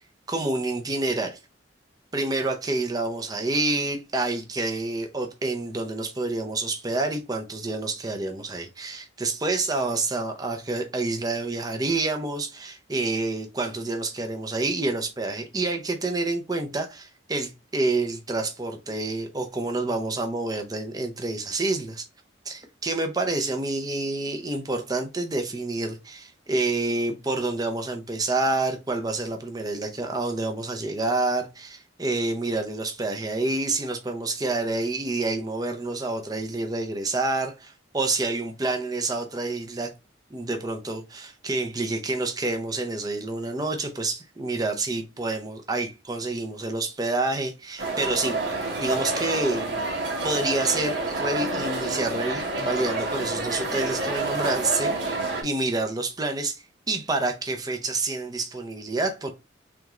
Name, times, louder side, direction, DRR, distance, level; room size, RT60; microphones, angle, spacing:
voice 1, 0.3-1.4 2.1-22.1 22.5-39.9 40.3-48.4 48.8-49.8 50.2-59.3, right 2 dB, 20° right, 0.6 m, -28 dB
sound 1, 47.8-55.4, right 2 dB, 65° right, 1.2 m, -28 dB
3.6 x 3.5 x 2.9 m
head